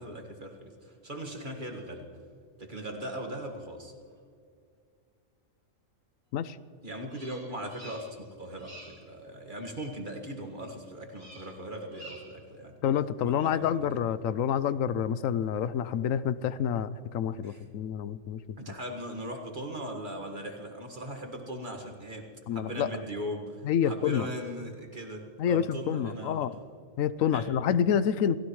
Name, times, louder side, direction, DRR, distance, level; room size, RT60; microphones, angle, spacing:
voice 1, 0.0-2.1 2.6-3.9 6.8-12.8 13.2-13.9 17.4-17.6 18.6-22.2 22.5-26.5 27.3-27.5, right 1 dB, 40° right, 2 dB, 2.0 m, -39 dB
Bird vocalization bird call bird song, 7.1-8.3 8.5-9.1 11.1-11.6 11.9-12.4, right 1 dB, 10° right, 4.0 m, -49 dB
voice 2, 12.8-18.4 22.5-22.9 23.6-24.3 25.4-26.5 27.0-28.4, left 8 dB, 85° left, 15 dB, 1.0 m, -28 dB
29.0 x 16.0 x 3.2 m, 2.2 s
omnidirectional pair, 1.3 m